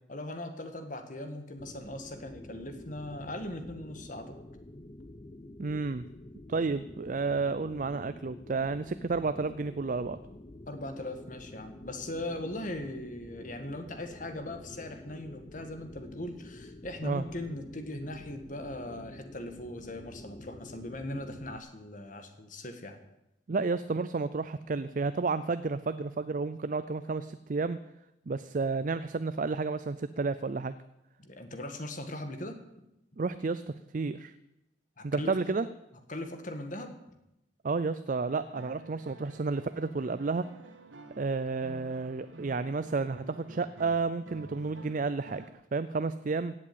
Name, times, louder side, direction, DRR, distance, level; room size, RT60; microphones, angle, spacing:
voice 1, 0.1-4.4 10.7-23.0 31.2-32.6 35.0-35.5 36.1-36.9, left 1 dB, 45° left, 7 dB, 1.7 m, -39 dB
sound 1, 1.6-21.6, left 1 dB, 25° left, 0.5 m, -48 dB
voice 2, 5.6-6.0 6.5-10.2 17.0-17.2 23.5-27.8 28.3-30.7 33.2-34.3 35.0-35.7 37.6-40.4 41.2-46.5, right 4 dB, 45° right, 13 dB, 0.5 m, -31 dB
sound 2, 38.3-45.5, right 2 dB, 90° right, 1.6 m, -51 dB
16.5 x 7.6 x 8.7 m, 0.88 s
head